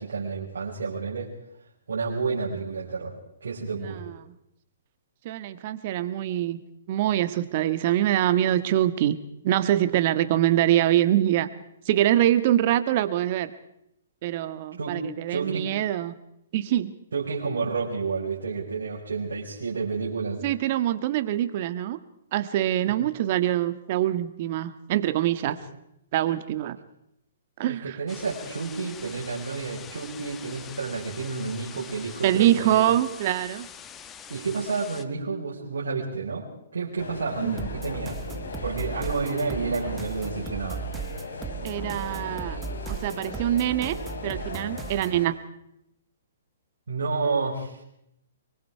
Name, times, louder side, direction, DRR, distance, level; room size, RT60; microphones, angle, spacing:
voice 1, 0.0-1.3 1.9-4.1 14.8-15.0 15.3-15.6 17.1-20.4 28.0-32.9 34.3-38.2 38.6-40.8 46.9-47.8, right 4 dB, 75° right, -4 dB, 5.4 m, -30 dB
voice 2, 3.7-4.3 5.2-6.6 6.9-9.2 9.4-11.5 11.8-13.5 14.2-16.1 16.5-16.9 20.4-22.0 22.3-25.6 26.1-26.8 27.6-28.0 32.2-33.7 37.4-37.7 41.6-42.6 42.9-44.0 44.2-45.4, right 12 dB, 45° right, 12 dB, 1.7 m, -24 dB
sound 1, 28.1-35.0, left 8 dB, 20° left, 1.5 m, -44 dB
sound 2, 37.0-45.3, left 3 dB, 75° left, 5.0 m, -38 dB
sound 3, 37.6-45.2, right 6 dB, 15° right, 1.5 m, -37 dB
25.0 x 23.0 x 4.7 m, 0.78 s
hypercardioid pair, 130°, 0 cm